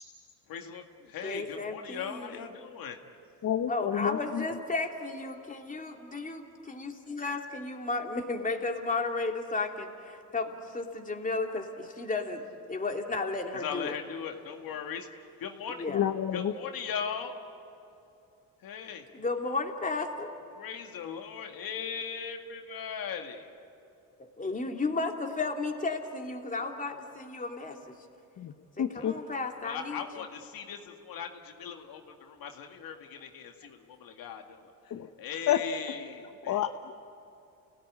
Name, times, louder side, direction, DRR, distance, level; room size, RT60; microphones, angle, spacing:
voice 1, 0.5-3.0 13.5-15.1 15.4-15.8 16.3-17.3 18.6-19.1 20.6-23.5 29.0-29.3 29.6-34.7 35.2-36.6, left 7 dB, 65° left, 4 dB, 2.1 m, -39 dB
voice 2, 1.2-2.3 3.7-12.4 12.7-14.0 15.8-16.1 19.1-20.3 24.2-27.9 28.8-30.2, left 3 dB, 20° left, 2 dB, 3.0 m, -33 dB
voice 3, 3.4-4.4 15.9-16.5 28.4-28.5 28.8-29.1 34.9-35.1 35.5-35.6 36.5-37.0, left 10 dB, 50° left, 7 dB, 1.1 m, -29 dB
29.5 x 17.5 x 9.7 m, 2.7 s
cardioid pair, 85°, 37 cm